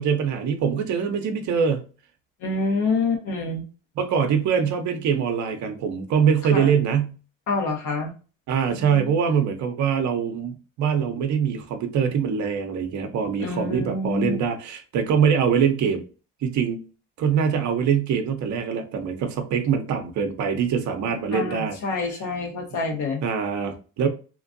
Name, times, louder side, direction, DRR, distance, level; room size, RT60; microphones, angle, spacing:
voice 1, 0.0-1.8 4.0-7.1 8.5-16.0 16.4-16.8 17.2-21.8 23.2-24.1, right 7 dB, 60° right, 5 dB, 0.7 m, -23 dB
voice 2, 2.4-3.6 6.5-6.7 7.5-8.1 8.7-9.1 13.4-14.4 21.3-23.2, left 3 dB, 65° left, 3 dB, 1.2 m, -27 dB
3.0 x 2.5 x 2.5 m, 0.35 s
supercardioid pair, 75°, 32 cm